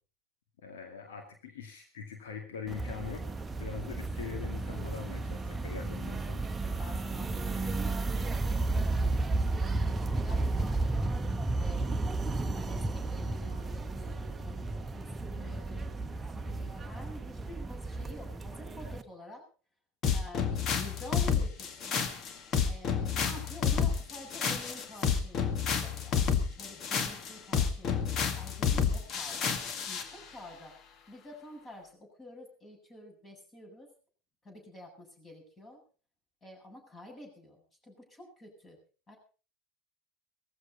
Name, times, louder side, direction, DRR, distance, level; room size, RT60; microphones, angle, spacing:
voice 1, 0.6-6.5, left 6 dB, 70° left, 4 dB, 2.3 m, -42 dB
sound 1, 2.7-19.0, right 2 dB, 15° right, 1.2 m, -33 dB
voice 2, 6.6-11.2 11.6-19.5 20.1-22.1 22.6-30.7 31.1-33.9 34.4-35.8 36.4-38.8 39.1-39.2, left 1 dB, 25° left, 3 dB, 7.8 m, -49 dB
sound 2, 20.0-30.1, left 7 dB, 40° left, 2.0 m, -30 dB
19.0 x 15.0 x 4.1 m, 0.37 s
figure-of-eight pair, 75°, 0 cm